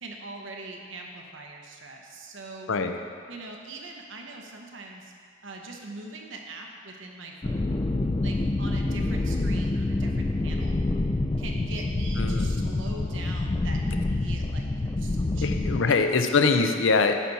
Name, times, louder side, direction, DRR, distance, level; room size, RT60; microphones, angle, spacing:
voice 1, 0.0-2.7 3.3-5.1 5.4-7.8 8.2-10.8 11.4-15.5 15.9-16.0, right 2 dB, 70° right, 1 dB, 1.0 m, -42 dB
sound 1, 7.4-15.8, left 2 dB, 20° left, 0.3 m, -27 dB
voice 2, 12.2-12.6 15.4-17.1, left 4 dB, 70° left, 6 dB, 0.6 m, -23 dB
10.0 x 6.0 x 4.1 m, 2.1 s
head